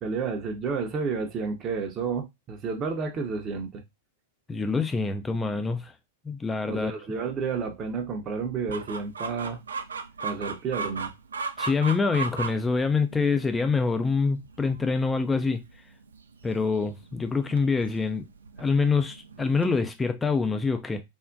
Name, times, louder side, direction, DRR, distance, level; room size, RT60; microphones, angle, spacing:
voice 1, 0.0-3.8 6.7-9.6 10.2-11.1, right 5 dB, 30° right, 0.6 m, -31 dB
voice 2, 4.5-5.9 6.2-6.9 11.6-15.6 16.4-18.3 18.6-21.0, left 4 dB, 15° left, 0.3 m, -25 dB
Chicken rooster, 8.7-19.8, right 4 dB, 80° right, 0.3 m, -37 dB
3.4 x 2.1 x 2.5 m
figure-of-eight pair, 100°, 0 cm